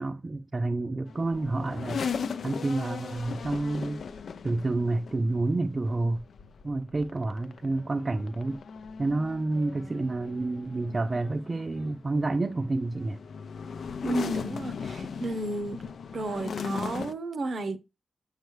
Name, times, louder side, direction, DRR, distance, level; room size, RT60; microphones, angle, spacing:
voice 1, 0.0-2.0 2.4-4.0 4.4-6.2 6.6-8.6 9.0-13.2, right 2 dB, 30° right, 0.4 m, -29 dB
sound 1, 1.1-17.1, left 6 dB, 75° left, 0.5 m, -38 dB
voice 2, 14.0-15.8 16.1-17.8, right 2 dB, 60° right, 0.9 m, -32 dB
7.4 x 6.5 x 3.1 m
wide cardioid pair, 155°, 0 cm